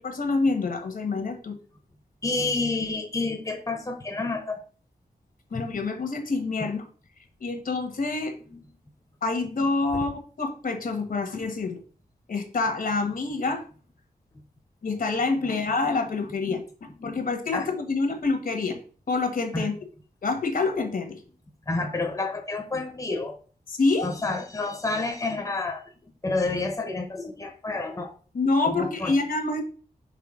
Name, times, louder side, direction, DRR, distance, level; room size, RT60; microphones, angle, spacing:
voice 1, 0.0-1.5 5.5-6.9 7.4-8.4 9.2-10.1 10.4-11.8 12.3-13.6 14.8-16.6 17.0-19.7 20.2-21.2 23.7-24.1 28.3-29.6, left 3 dB, 65° left, 6 dB, 1.3 m, -26 dB
voice 2, 2.2-4.6 5.5-5.6 8.5-8.6 17.0-17.1 17.5-17.7 19.5-19.7 21.7-23.4 24.0-25.8 26.2-28.1 28.6-29.1, left 3 dB, 20° left, 3 dB, 0.9 m, -29 dB
5.9 x 3.4 x 5.0 m, 0.40 s
wide cardioid pair, 125°, 16 cm